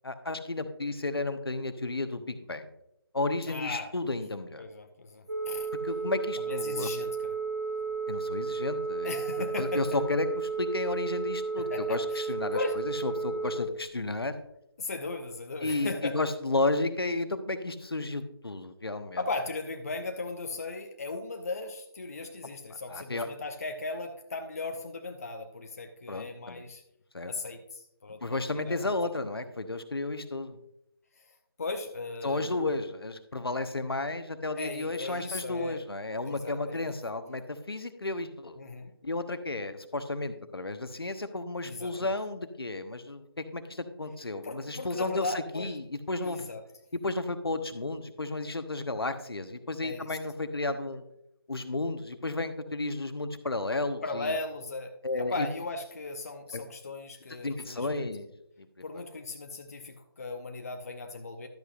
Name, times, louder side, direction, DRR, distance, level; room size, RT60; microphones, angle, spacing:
voice 1, 0.0-2.7 3.1-4.7 5.8-6.9 8.1-14.3 15.6-19.2 22.9-23.3 26.1-26.6 27.1-27.3 28.2-30.6 32.2-38.6 39.0-46.5 46.9-51.0 51.5-54.3 55.0-55.5 56.5-56.6 57.4-58.3 58.6-58.7, left 2 dB, 70° left, 9 dB, 1.0 m, -33 dB
voice 2, 3.5-3.9 4.6-5.7 6.4-7.3 9.0-9.8 11.6-12.3 12.5-12.8 14.8-16.2 19.2-26.8 27.3-28.8 31.2-31.3 31.6-32.5 34.5-35.8 36.3-37.0 38.6-38.9 41.6-42.1 44.4-45.8 46.2-46.6 49.8-50.2 54.0-58.1 58.8-61.5, left 3 dB, 35° left, 5 dB, 0.7 m, -37 dB
Telephone, 5.3-13.6, right 4 dB, 35° right, 1.5 m, -33 dB
12.0 x 8.3 x 2.5 m, 0.76 s
figure-of-eight pair, 160°, 13 cm